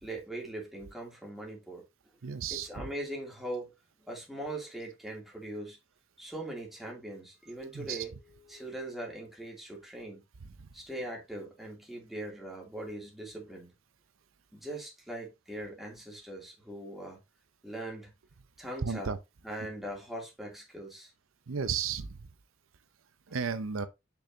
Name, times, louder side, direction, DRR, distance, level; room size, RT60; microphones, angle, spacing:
voice 1, 0.0-1.8 2.5-3.7 4.0-5.8 6.2-10.2 10.7-13.7 14.5-17.2 17.6-18.1 18.6-19.1 19.4-21.1, right 1 dB, ahead, 2.8 m, -41 dB
voice 2, 2.2-2.7 7.7-8.0 18.8-19.2 21.5-22.2 23.3-23.9, right 6 dB, 80° right, 0.6 m, -33 dB
6.7 x 6.2 x 2.8 m
head